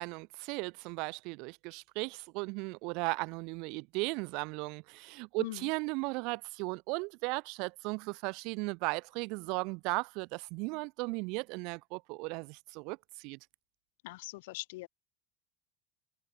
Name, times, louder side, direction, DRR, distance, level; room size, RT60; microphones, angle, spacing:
voice 1, 0.0-13.4, right 29 dB, 65° right, 0.4 m, -36 dB
voice 2, 5.4-5.7 14.0-14.9, left 20 dB, 80° left, 0.3 m, -41 dB
supercardioid pair, 120°, 0 cm